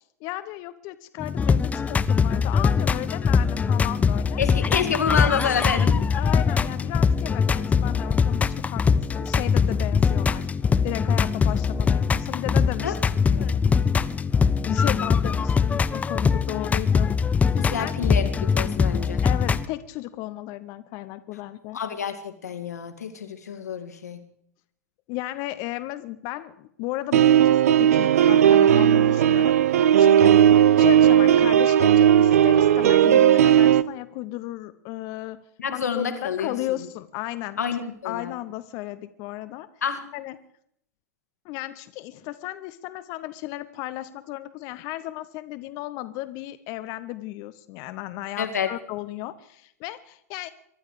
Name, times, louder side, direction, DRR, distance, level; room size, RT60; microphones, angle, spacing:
voice 1, 0.2-4.4 6.1-10.5 10.8-13.0 14.6-17.1 17.7-17.9 19.2-21.8 25.1-30.3 30.8-35.4 35.7-37.6 38.0-39.7 40.1-40.4 41.4-50.5, left 16 dB, 45° left, 12 dB, 0.8 m, -34 dB
sound 1, 1.2-19.7, left 6 dB, 15° left, 0.7 m, -22 dB
voice 2, 4.4-6.0 12.8-12.9 13.3-13.5 17.6-19.2 21.7-24.2 35.6-36.6 37.6-38.3 39.8-40.0 48.4-48.7, left 7 dB, 75° left, 8 dB, 2.2 m, -28 dB
sound 2, 27.1-33.8, right 10 dB, 65° right, 0.7 m, -16 dB
24.0 x 12.0 x 4.9 m, 0.71 s
figure-of-eight pair, 95°, 9 cm